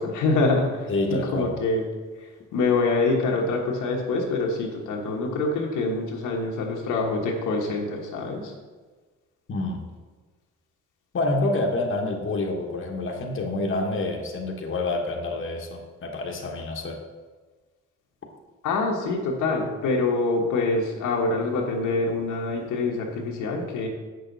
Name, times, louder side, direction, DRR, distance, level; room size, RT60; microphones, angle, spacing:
voice 1, 0.0-1.8 2.5-8.5 18.6-23.9, left 3 dB, 85° left, 0 dB, 1.4 m, -25 dB
voice 2, 0.9-1.5 9.5-9.9 11.1-17.0, left 2 dB, 40° left, 1 dB, 1.3 m, -27 dB
7.5 x 6.3 x 4.0 m, 1.4 s
cardioid pair, 90°, 30 cm